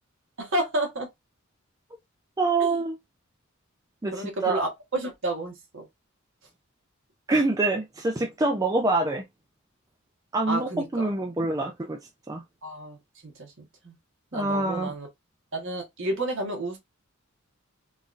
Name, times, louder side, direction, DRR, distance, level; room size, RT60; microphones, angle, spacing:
voice 1, 0.4-1.1 2.6-2.8 4.1-5.8 10.5-11.0 12.6-13.0 13.2-13.9 14.3-15.1 15.5-16.8, right 1 dB, 65° right, 1.4 m, -31 dB
voice 2, 2.4-3.0 4.0-4.6 7.3-9.2 10.3-12.0 12.3-12.4 14.3-14.9, right 2 dB, 15° right, 0.4 m, -25 dB
3.8 x 2.6 x 2.4 m
head